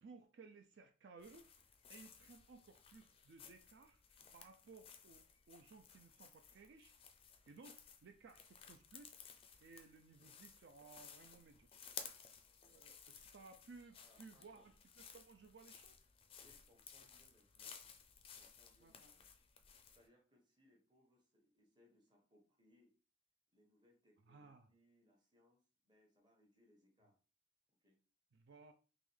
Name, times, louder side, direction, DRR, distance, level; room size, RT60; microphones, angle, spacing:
voice 1, 0.0-1.5 1.9-6.9 7.5-9.2 9.6-11.7 12.6-16.0 18.8-19.1 24.3-24.7 28.3-28.7, right 4 dB, 65° right, 6 dB, 0.4 m, -60 dB
sound 1, 1.2-20.1, left 7 dB, 30° left, 0.4 m, -58 dB
voice 2, 14.0-14.7 16.4-17.9 18.3-19.3 19.9-23.0 23.5-27.2 27.8-28.0, left 1 dB, 25° right, 0 dB, 1.1 m, -73 dB
3.7 x 3.0 x 3.2 m, 0.36 s
head